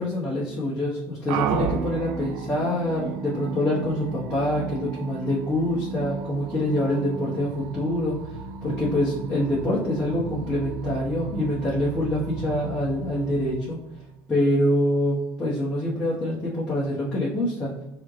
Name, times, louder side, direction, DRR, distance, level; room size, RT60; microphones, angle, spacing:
voice 1, 0.0-8.2 8.6-13.8 14.3-17.7, left 1 dB, 15° left, -10 dB, 1.0 m, -25 dB
sound 1, 1.3-14.1, right 6 dB, 65° right, 0.4 m, -34 dB
3.2 x 2.9 x 3.7 m, 0.94 s
cardioid pair, 150°, 8 cm